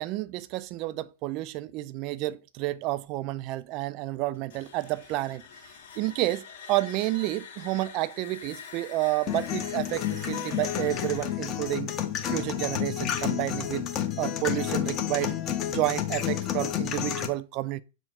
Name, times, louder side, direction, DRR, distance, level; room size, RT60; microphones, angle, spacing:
voice 1, 0.0-5.4 6.0-11.9 12.3-13.9 14.2-15.4 15.7-17.8, right 17 dB, 40° right, 0.3 m, -30 dB
sound 1, 4.3-13.2, left 7 dB, 60° left, 1.5 m, -46 dB
sound 2, 9.3-17.3, left 10 dB, 30° left, 0.7 m, -30 dB
5.7 x 2.0 x 4.3 m
hypercardioid pair, 115°, 0 cm